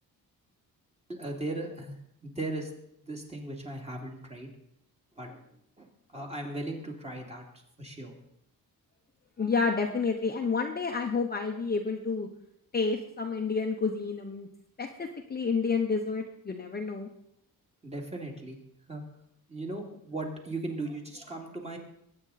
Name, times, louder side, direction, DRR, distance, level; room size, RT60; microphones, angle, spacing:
voice 1, 1.1-2.0 2.2-2.7 3.0-4.5 5.2-5.4 5.8-7.4 7.8-8.2 17.8-18.6 18.9-19.0 19.5-21.8, right 2 dB, 15° right, 0 dB, 2.5 m, -37 dB
voice 2, 9.4-12.3 12.7-14.5 14.8-17.1, left 4 dB, 25° left, 2 dB, 0.9 m, -29 dB
20.0 x 8.9 x 4.1 m, 0.75 s
cardioid pair, 135°, 36 cm